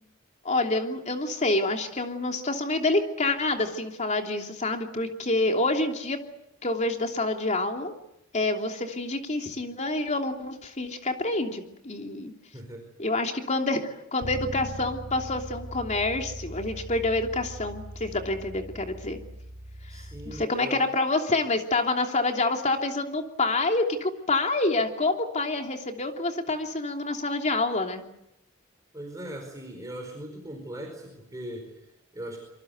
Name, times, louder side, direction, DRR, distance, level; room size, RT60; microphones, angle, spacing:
voice 1, 0.4-6.2 6.6-7.9 8.3-12.3 13.0-19.2 20.3-28.0, left 2 dB, 35° left, 3 dB, 3.1 m, -27 dB
voice 2, 12.5-12.9 19.9-20.8 28.9-32.4, right 1 dB, 15° right, 2 dB, 4.8 m, -40 dB
Bass guitar, 14.2-20.5, equal, 35° right, 2.1 m, -40 dB
25.5 x 24.0 x 8.1 m, 0.83 s
head